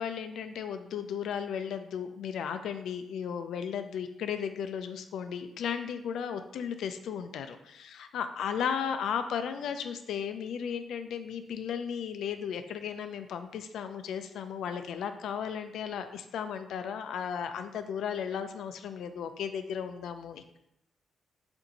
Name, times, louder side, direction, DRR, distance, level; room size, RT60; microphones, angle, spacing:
voice 1, 0.0-20.6, left 7 dB, 90° left, 8 dB, 0.3 m, -35 dB
6.7 x 2.6 x 2.8 m, 0.83 s
wide cardioid pair, 170°, 0 cm